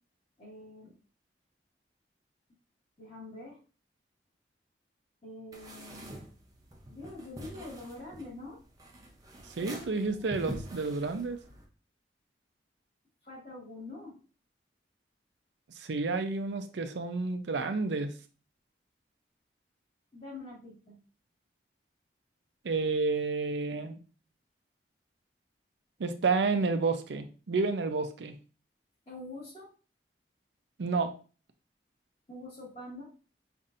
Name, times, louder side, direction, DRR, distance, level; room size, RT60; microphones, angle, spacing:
voice 1, 0.4-0.9 3.0-3.6 5.2-6.2 6.9-8.6 9.6-9.9 10.2-10.4 13.2-14.2 20.1-21.0 29.1-29.7 32.3-33.1, left 2 dB, 35° left, -5 dB, 1.9 m, -45 dB
sound 1, 5.5-11.6, right 1 dB, 20° right, 0.6 m, -45 dB
voice 2, 9.6-11.4 15.8-18.1 22.6-24.0 26.0-28.4 30.8-31.1, right 4 dB, 85° right, 8 dB, 0.5 m, -30 dB
5.4 x 2.6 x 2.5 m, 0.36 s
head